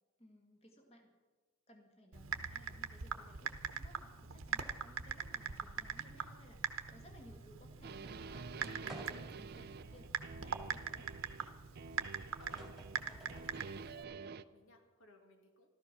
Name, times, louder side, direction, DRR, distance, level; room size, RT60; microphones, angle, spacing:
voice 1, 0.2-1.1 1.7-9.0 9.4-11.1, equal, 30° left, 2 dB, 1.9 m, -61 dB
Typing, 2.1-14.0, right 6 dB, 80° right, 1.0 m, -43 dB
sound 1, 7.8-11.5 11.8-13.0 13.3-14.4, right 5 dB, 50° right, 0.4 m, -49 dB
sound 2, 8.9-9.5 10.1-10.2 12.0-12.1 12.4-13.6, right 1 dB, ahead, 2.2 m, -52 dB
voice 2, 9.3-10.1 11.7-15.7, left 1 dB, 70° left, 3 dB, 2.3 m, -63 dB
14.5 x 13.5 x 6.0 m, 1.3 s
head